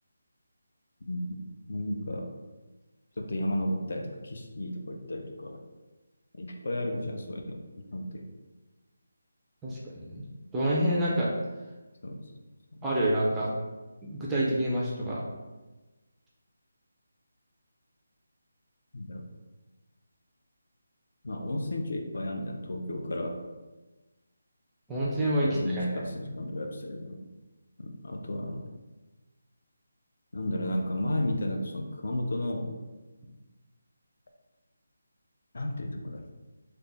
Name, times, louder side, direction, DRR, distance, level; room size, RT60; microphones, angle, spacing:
voice 1, 1.1-1.4 1.7-2.3 3.2-5.6 6.3-7.6 7.9-8.2 12.0-12.2 12.7-12.8 18.9-19.3 21.2-23.4 25.4-27.2 27.8-28.6 30.3-32.7 35.5-36.3, left 1 dB, 55° left, 3 dB, 0.5 m, -33 dB
voice 2, 9.6-10.3 10.5-11.3 12.8-13.5 14.0-15.2 24.9-25.9, right 1 dB, 5° right, -6 dB, 0.3 m, -27 dB
3.4 x 2.1 x 3.8 m, 1.2 s
figure-of-eight pair, 175°, 0 cm